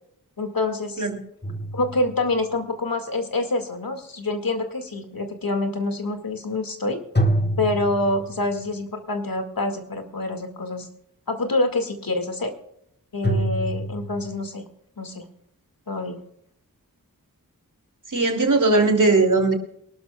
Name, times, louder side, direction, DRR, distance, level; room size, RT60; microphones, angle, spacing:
voice 1, 0.4-1.1 1.7-7.0 7.6-10.9 11.3-12.5 13.1-14.6 15.0-15.2 15.9-16.2, left 2 dB, 75° left, 5 dB, 2.2 m, -26 dB
sound 1, 1.4-2.6 7.1-8.7 13.2-14.4, right 1 dB, 30° left, 1.4 m, -26 dB
voice 2, 18.1-19.5, right 3 dB, 60° right, 4 dB, 2.9 m, -19 dB
24.0 x 12.5 x 2.4 m, 0.74 s
wide cardioid pair, 55°, 35 cm